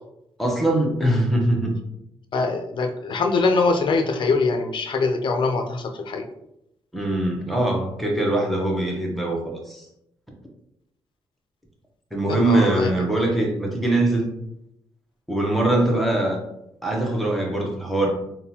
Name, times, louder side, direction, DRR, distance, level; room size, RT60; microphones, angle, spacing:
voice 1, 0.4-1.8 6.9-9.9 12.1-14.3 15.3-16.4 16.8-18.1, right 1 dB, ahead, -1 dB, 0.8 m, -22 dB
voice 2, 2.3-6.3 12.3-12.9, left 3 dB, 55° left, 4 dB, 0.5 m, -23 dB
3.6 x 2.3 x 2.8 m, 0.79 s
cardioid pair, 100°, 10 cm